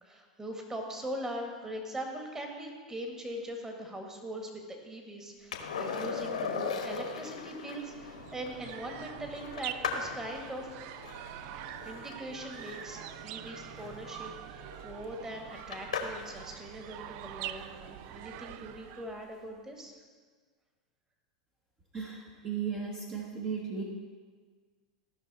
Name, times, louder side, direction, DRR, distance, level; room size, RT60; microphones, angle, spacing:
voice 1, 0.0-10.9 11.8-20.0, right 1 dB, 15° right, 2 dB, 1.7 m, -41 dB
Skateboard, 5.5-16.4 18.9-19.0, left 5 dB, 85° left, 1.2 m, -40 dB
sound 1, 7.7-19.3, right 12 dB, 50° right, 0.4 m, -45 dB
voice 2, 21.9-23.8, right 6 dB, 30° right, -2 dB, 1.3 m, -35 dB
15.0 x 5.7 x 4.2 m, 1.5 s
hypercardioid pair, 95°, 4 cm